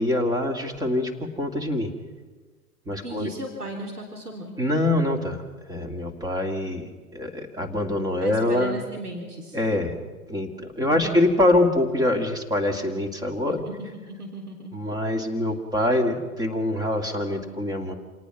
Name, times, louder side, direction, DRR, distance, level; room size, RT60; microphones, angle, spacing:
voice 1, 0.0-1.9 2.9-3.3 4.6-8.8 9.5-10.0 10.3-13.6 14.7-17.9, left 1 dB, 10° right, 4 dB, 2.4 m, -24 dB
voice 2, 3.0-4.6 8.2-9.6 10.8-11.3 13.7-14.8, right 1 dB, 85° right, 1 dB, 3.7 m, -36 dB
27.5 x 18.5 x 6.0 m, 1.3 s
figure-of-eight pair, 110°, 45 cm